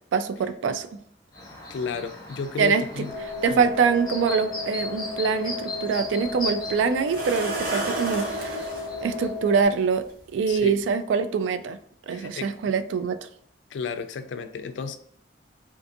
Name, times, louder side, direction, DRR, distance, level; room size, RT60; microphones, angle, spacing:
voice 1, 0.1-1.0 2.6-3.0 3.4-8.6 9.0-10.0 10.3-11.8 12.1-13.3, right 5 dB, 85° right, 10 dB, 0.3 m, -24 dB
Chirp tweet, 1.3-9.3, left 2 dB, 25° left, 0.8 m, -38 dB
voice 2, 1.7-3.1 3.5-3.7 10.5-10.7 12.1-12.5 13.7-15.0, left 5 dB, 75° left, 9 dB, 0.3 m, -32 dB
sound 1, 3.1-9.7, left 4 dB, 10° right, 0.5 m, -35 dB
sound 2, 5.9-6.0 7.1-8.9 10.1-10.2 10.7-10.9, right 2 dB, 50° right, 0.7 m, -31 dB
2.5 x 2.5 x 2.5 m, 0.68 s
head